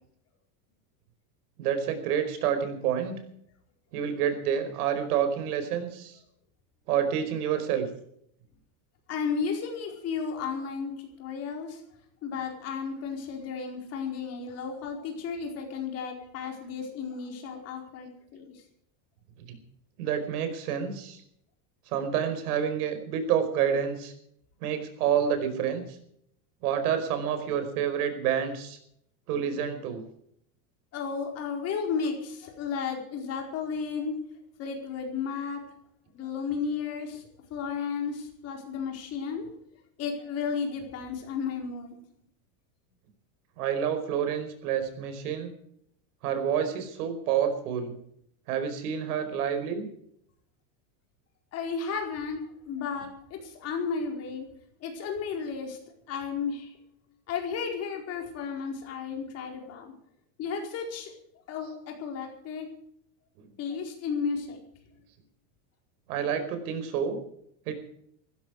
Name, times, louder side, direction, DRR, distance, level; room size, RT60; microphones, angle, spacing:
voice 1, 1.6-3.2 3.9-6.2 6.9-7.9 20.0-21.2 21.9-24.1 24.6-25.8 26.6-28.8 29.3-30.0 43.6-45.5 46.2-48.0 48.5-49.9 66.1-67.2 67.7-67.8, right 8 dB, 70° right, 8 dB, 5.0 m, -28 dB
voice 2, 9.1-11.8 12.2-18.6 30.9-34.2 34.6-35.6 36.1-37.2 37.5-39.5 40.0-42.0 51.5-54.5 54.8-55.8 56.1-56.7 57.3-59.9 60.4-61.1 61.5-62.7 63.6-64.6, left 5 dB, 30° left, 2 dB, 4.6 m, -33 dB
18.0 x 15.5 x 4.9 m, 0.69 s
supercardioid pair, 175°, 46 cm